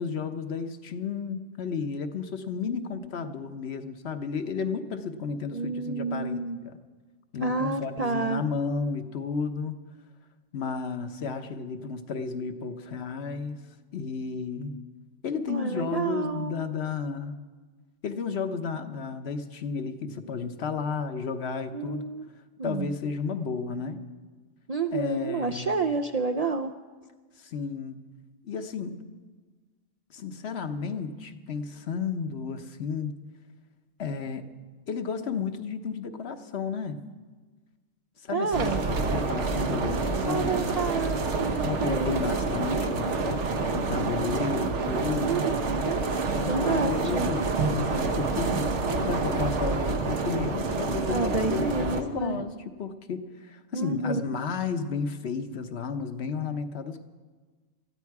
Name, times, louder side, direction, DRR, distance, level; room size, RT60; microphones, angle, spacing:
voice 1, 0.0-6.8 7.3-9.8 10.5-13.6 13.9-14.7 15.2-17.3 18.0-22.0 22.6-24.0 24.9-25.7 27.4-28.0 28.4-29.0 30.1-33.1 34.0-34.4 34.9-37.0 38.2-41.0 41.6-45.5 46.3-48.7 49.0-57.0, left 5 dB, 65° left, 8 dB, 1.1 m, -33 dB
voice 2, 5.5-6.6 7.4-8.4 15.5-16.6 21.7-22.3 22.6-22.9 24.7-26.7 38.3-38.8 40.3-42.3 45.2-46.0 46.5-47.3 51.1-52.5 53.7-54.2, right 4 dB, 50° right, 6 dB, 0.4 m, -29 dB
sound 1, 38.5-52.0, right 3 dB, 75° right, 1.3 m, -28 dB
19.5 x 14.0 x 4.7 m, 1.4 s
omnidirectional pair, 1.2 m